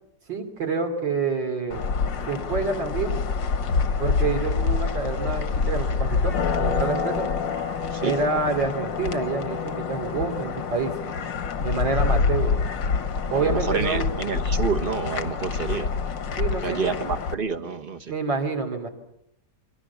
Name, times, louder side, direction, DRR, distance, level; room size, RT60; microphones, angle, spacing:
voice 1, 0.3-1.8 2.2-3.2 4.0-7.3 8.0-10.9 11.6-12.5 13.3-14.1 16.4-16.9 18.1-18.9, right 4 dB, 85° right, 3 dB, 3.8 m, -27 dB
sound 1, 1.7-17.3, left 5 dB, 80° left, 2.1 m, -26 dB
voice 2, 13.3-15.9 16.6-18.1, right 5 dB, 35° right, 8 dB, 1.2 m, -29 dB
29.0 x 23.0 x 7.1 m, 0.79 s
omnidirectional pair, 1.9 m